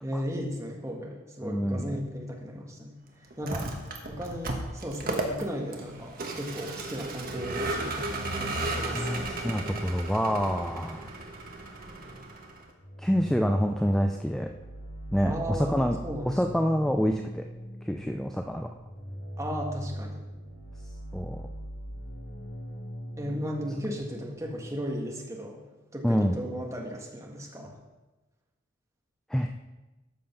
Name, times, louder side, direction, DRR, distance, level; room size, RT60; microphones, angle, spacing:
voice 1, 0.0-3.0 3.4-3.7 4.1-8.1 8.4-9.2 15.2-16.4 19.4-20.2 23.2-25.6 25.9-27.7, equal, 15° right, 0 dB, 1.5 m, -35 dB
voice 2, 1.4-2.0 3.5-3.7 8.9-11.0 13.0-14.5 15.1-16.0 16.2-17.5 17.8-18.7 21.1-21.5 26.0-26.4 29.3-29.5, equal, 5° left, 4 dB, 0.4 m, -27 dB
Vehicle, 3.3-12.7, right 2 dB, 50° right, 1.4 m, -34 dB
sound 1, 12.8-24.8, equal, 70° left, 2.4 m, -40 dB
13.0 x 5.2 x 5.8 m, 1.1 s
head